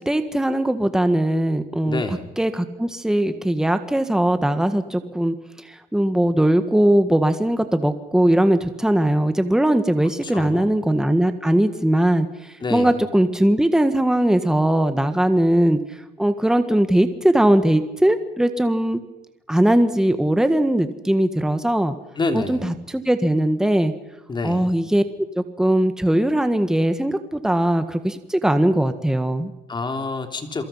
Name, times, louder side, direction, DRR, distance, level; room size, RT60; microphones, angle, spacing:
voice 1, 0.0-5.3 5.6-12.3 12.7-15.8 16.2-19.0 19.5-21.9 22.3-23.9 24.4-25.0 25.3-29.5, right 1 dB, 5° right, 9 dB, 1.6 m, -20 dB
voice 2, 1.8-2.3 10.2-10.7 12.6-13.0 22.2-22.6 24.3-24.6 29.7-30.7, left 3 dB, 25° left, 5 dB, 3.2 m, -27 dB
28.5 x 23.0 x 5.7 m, 0.96 s
cardioid pair, 110°, 17 cm